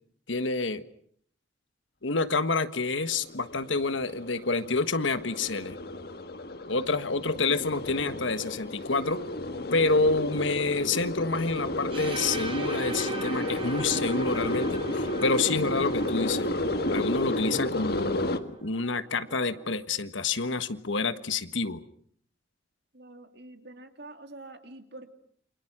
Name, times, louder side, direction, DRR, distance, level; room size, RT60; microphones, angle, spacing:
voice 1, 0.3-0.8 2.0-5.8 6.7-9.2 9.7-16.5 16.9-21.8, left 3 dB, 80° left, 11 dB, 1.5 m, -28 dB
sound 1, 2.9-18.4, left 1 dB, 50° left, 1.7 m, -32 dB
sound 2, 11.9-19.7, right 2 dB, 30° right, 4.2 m, -40 dB
voice 2, 22.9-25.1, right 2 dB, 60° right, 7 dB, 2.8 m, -46 dB
28.5 x 26.0 x 6.1 m, 0.62 s
head